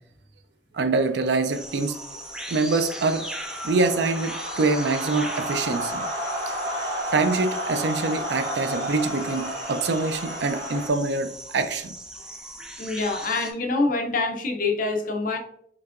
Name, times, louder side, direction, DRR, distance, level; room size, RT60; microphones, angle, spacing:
voice 1, 0.7-1.9 2.5-3.2 3.6-6.1 6.7-11.9, right 3 dB, 70° right, 0.4 m, -25 dB
sound 1, 1.0-10.9, equal, 35° right, 1.6 m, -32 dB
sound 2, 1.5-13.5, right 1 dB, 5° right, 0.4 m, -39 dB
voice 2, 12.8-15.4, left 3 dB, 50° left, 0.7 m, -25 dB
4.6 x 3.6 x 2.5 m
head